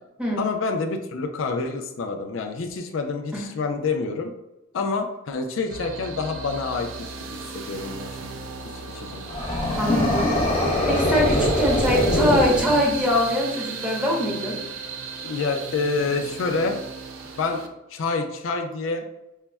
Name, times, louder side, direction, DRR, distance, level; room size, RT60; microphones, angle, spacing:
voice 1, 0.4-4.3 4.7-8.4 8.6-9.3 15.2-16.8 17.4-17.6 17.9-19.1, left 4 dB, 85° left, 4 dB, 0.4 m, -28 dB
sound 1, 5.7-17.7, right 5 dB, 85° right, 0.4 m, -35 dB
sound 2, 9.3-13.2, left 1 dB, 30° left, 0.6 m, -23 dB
voice 2, 9.8-10.4 10.9-14.6, equal, 5° right, -4 dB, 0.9 m, -23 dB
5.4 x 2.0 x 2.2 m, 0.94 s
head